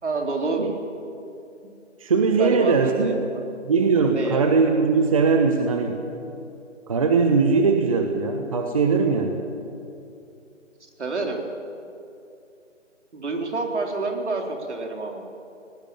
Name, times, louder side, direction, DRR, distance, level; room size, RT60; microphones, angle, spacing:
voice 1, 0.0-0.6 2.4-3.4 4.1-4.4 11.0-11.4 13.1-15.2, right 3 dB, 65° right, 2 dB, 3.9 m, -28 dB
voice 2, 2.0-3.1 3.7-6.0 6.9-9.4, right 4 dB, 30° right, 5 dB, 1.1 m, -20 dB
19.5 x 18.0 x 8.9 m, 2.6 s
figure-of-eight pair, 165°, 37 cm